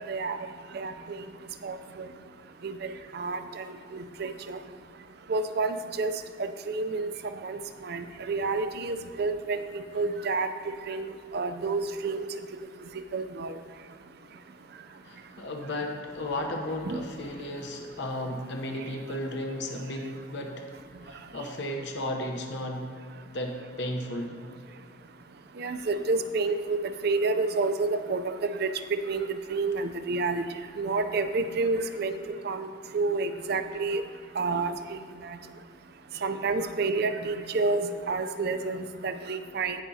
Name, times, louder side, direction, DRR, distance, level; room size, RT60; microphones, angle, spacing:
voice 1, 0.7-1.2 1.6-2.1 2.6-3.6 3.9-4.6 5.3-6.1 6.7-7.1 7.4-9.6 9.9-10.5 10.9-12.3 13.1-13.5 16.9-17.0 25.6-30.4 30.8-32.2 32.4-32.7 32.9-34.0 34.4-34.7 36.2-39.8, right 3 dB, 55° right, 9 dB, 0.5 m, -29 dB
voice 2, 15.0-20.7 21.0-22.9 23.3-24.4, left 1 dB, 60° left, 2 dB, 0.9 m, -34 dB
17.0 x 5.9 x 2.8 m, 2.2 s
head